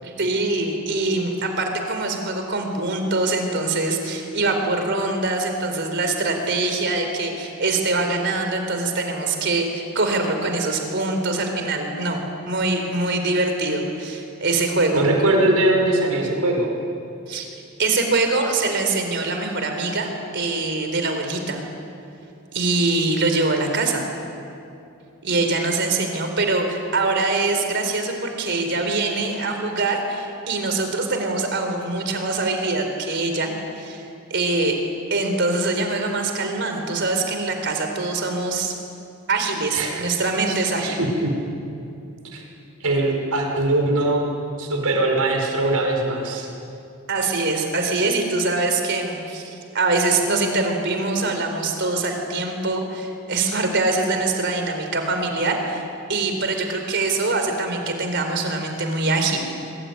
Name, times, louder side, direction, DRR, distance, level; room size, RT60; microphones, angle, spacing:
voice 1, 0.0-15.0 17.3-17.5 17.8-21.7 22.5-24.1 25.2-34.0 34.3-34.8 35.1-38.7 39.3-40.9 47.1-59.4, right 3 dB, 50° right, 5 dB, 4.1 m, -23 dB
voice 2, 14.9-16.7 39.7-40.0 40.5-41.3 42.3-42.4 42.8-44.3 44.6-46.5, right 2 dB, 85° right, 1 dB, 5.3 m, -21 dB
24.0 x 24.0 x 9.7 m, 2.6 s
head